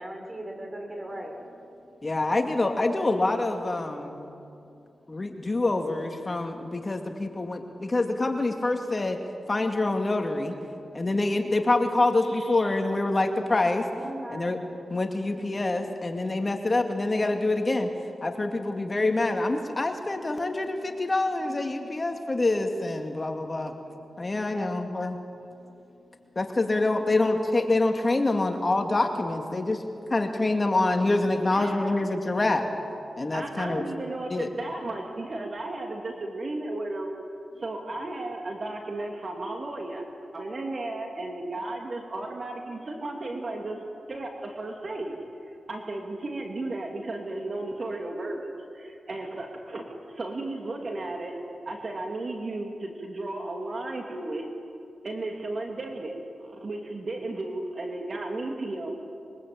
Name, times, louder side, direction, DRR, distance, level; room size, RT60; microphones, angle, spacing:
voice 1, 0.0-1.3 12.3-12.7 13.9-14.5 24.5-24.7, right 1 dB, 30° right, 2 dB, 7.1 m, -38 dB
voice 2, 2.0-4.2 5.1-10.5 10.9-13.9 14.3-14.6 14.9-17.9 18.2-23.7 24.2-25.2 26.4-29.8 30.1-32.6 33.2-33.9 34.3-34.5, left 2 dB, 35° left, 4 dB, 2.4 m, -26 dB
voice 3, 31.5-32.0 33.3-37.1 37.6-40.0 40.3-43.8 44.1-45.2 45.7-51.4 51.6-54.5 55.0-58.9, right 2 dB, 50° right, 2 dB, 2.9 m, -34 dB
24.5 x 23.5 x 8.8 m, 2.6 s
cardioid pair, 60°, 0 cm